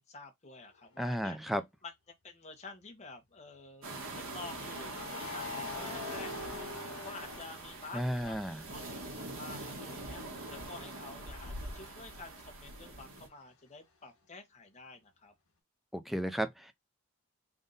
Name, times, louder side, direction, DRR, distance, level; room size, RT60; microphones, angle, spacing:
voice 1, 0.0-1.4 1.8-1.9 2.2-3.9 4.1-15.3, left 3 dB, 30° left, 1.1 m, -50 dB
voice 2, 1.0-1.6 7.9-8.6 15.9-16.7, equal, ahead, 0.4 m, -33 dB
sound 1, 1.2-1.4 4.4-8.3 8.7-12.3, left 4 dB, 85° left, 1.5 m, -46 dB
sound 2, 3.8-13.3, right 2 dB, 65° right, 1.4 m, -43 dB
3.6 x 2.6 x 3.9 m
head